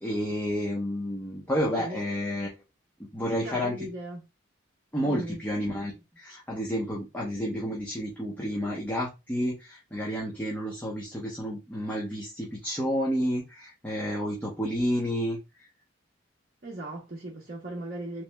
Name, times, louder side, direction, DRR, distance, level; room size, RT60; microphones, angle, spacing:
voice 1, 0.0-2.5 3.0-3.8 4.9-15.4, equal, 10° left, 0.8 m, -30 dB
voice 2, 3.2-4.2 5.0-5.4 16.6-18.2, right 1 dB, 45° right, 0.7 m, -38 dB
3.3 x 3.1 x 3.3 m
head